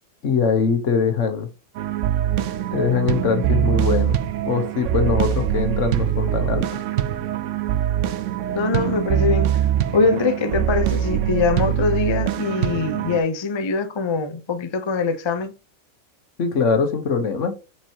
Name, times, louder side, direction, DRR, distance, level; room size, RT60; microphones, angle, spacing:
voice 1, 0.2-1.5 2.7-4.2 4.4-6.8 16.4-17.5, left 5 dB, 65° left, 1.4 m, -22 dB
sound 1, 1.7-13.2, right 11 dB, 70° right, 0.9 m, -23 dB
voice 2, 8.5-9.5 9.9-15.5, left 4 dB, 40° left, 0.4 m, -23 dB
7.3 x 4.6 x 2.9 m
omnidirectional pair, 1.4 m